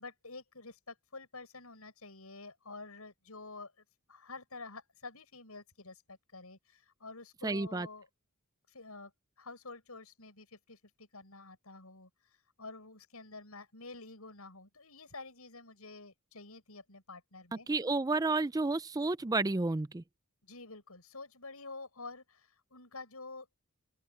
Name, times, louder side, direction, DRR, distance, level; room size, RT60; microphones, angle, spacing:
voice 1, 0.0-3.7 4.1-8.1 8.7-9.1 9.4-12.1 12.6-17.7 20.4-23.5, left 3 dB, 85° left, 7.0 m, -49 dB
voice 2, 7.4-7.9 17.7-20.0, right 3 dB, 15° right, 0.4 m, -31 dB
open air
head